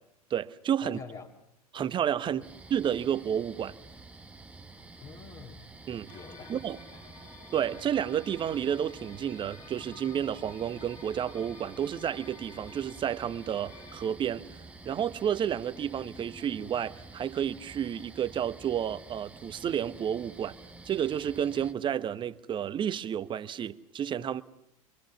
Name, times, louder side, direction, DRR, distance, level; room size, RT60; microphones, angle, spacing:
voice 1, 0.3-1.0 1.7-2.4 2.7-3.8 5.9-6.1 6.5-6.8 7.5-14.5 14.8-20.5 20.8-24.4, right 9 dB, 25° right, 1.0 m, -31 dB
voice 2, 0.8-1.3 2.2-2.5 5.0-5.7 6.1-6.6 6.9-7.1, left 5 dB, 25° left, 2.4 m, -46 dB
sound 1, 2.4-21.7, right 3 dB, 5° right, 1.4 m, -49 dB
sound 2, 6.1-14.1, left 3 dB, 75° left, 5.8 m, -52 dB
26.5 x 23.5 x 7.1 m
figure-of-eight pair, 90°, 19 cm